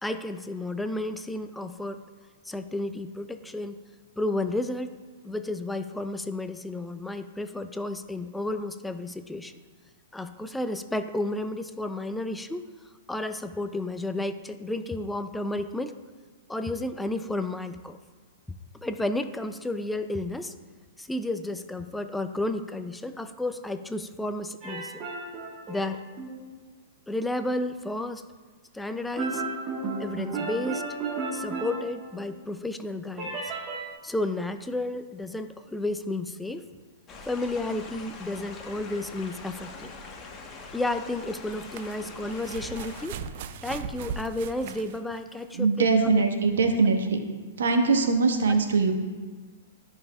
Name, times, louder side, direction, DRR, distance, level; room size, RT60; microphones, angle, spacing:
voice 1, 0.0-2.0 2.5-3.8 4.2-4.9 5.2-9.5 10.1-12.7 13.1-15.9 16.5-18.0 18.8-20.5 21.0-25.0 25.7-26.0 27.1-28.3 28.7-29.4 30.0-30.8 31.3-33.4 34.0-36.7 37.3-39.9 40.7-43.2 43.6-46.1, left 2 dB, 5° left, 9 dB, 0.3 m, -32 dB
sound 1, 24.6-26.5 29.2-32.5 33.2-33.9, right 3 dB, 30° right, 1.3 m, -34 dB
sound 2, 37.1-43.1, left 3 dB, 25° left, 1.1 m, -43 dB
sound 3, 39.2-39.3 41.3-45.6 46.5-46.6, right 7 dB, 55° right, 0.5 m, -39 dB
voice 2, 45.5-47.2 47.6-48.9, right 4 dB, 80° right, 5 dB, 1.0 m, -22 dB
12.5 x 5.4 x 2.3 m, 1.4 s
hypercardioid pair, 125°, 0 cm